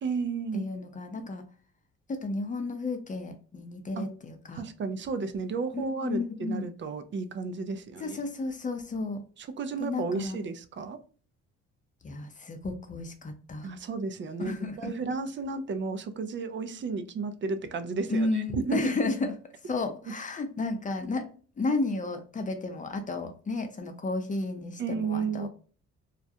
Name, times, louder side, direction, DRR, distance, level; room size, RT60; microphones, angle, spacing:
voice 1, 0.0-0.7 4.0-4.1 4.5-8.2 9.4-11.0 13.6-18.9 20.1-20.2 24.8-25.5, right 4 dB, 40° right, 0.4 m, -33 dB
voice 2, 0.5-1.4 2.1-4.6 5.7-6.6 8.0-9.2 9.8-10.4 12.0-13.7 14.4-14.9 18.1-19.3 19.7-21.3 21.6-25.5, left 3 dB, 25° left, 0.6 m, -32 dB
2.3 x 2.1 x 2.7 m
cardioid pair, 90°, 30 cm